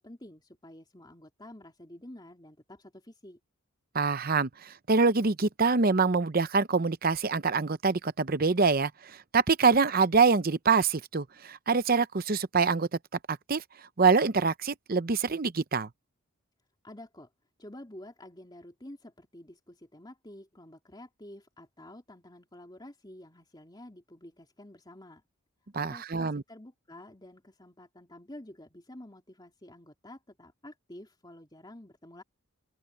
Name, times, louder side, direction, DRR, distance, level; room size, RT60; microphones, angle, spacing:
voice 1, 0.0-3.4 16.8-17.3 17.6-25.2 25.8-32.2, left 1 dB, 20° left, 3.4 m, -49 dB
voice 2, 3.9-12.9 13.3-13.6 14.0-15.9 25.7-26.4, right 4 dB, 45° right, 0.7 m, -25 dB
open air
head